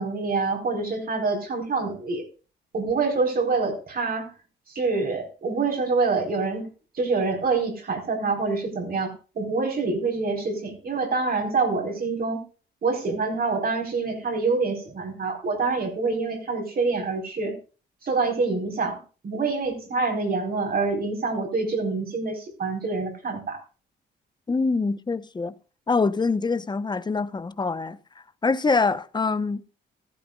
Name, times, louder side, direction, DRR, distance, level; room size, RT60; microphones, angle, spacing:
voice 1, 0.0-2.2 2.7-4.3 4.7-6.7 6.9-12.4 12.8-17.6 18.0-23.6, right 4 dB, 50° right, 4.3 m, -26 dB
voice 2, 24.5-25.5 25.9-28.0 28.4-29.7, left 4 dB, 20° left, 0.9 m, -24 dB
15.0 x 13.0 x 2.4 m
cardioid pair, 90°, 20 cm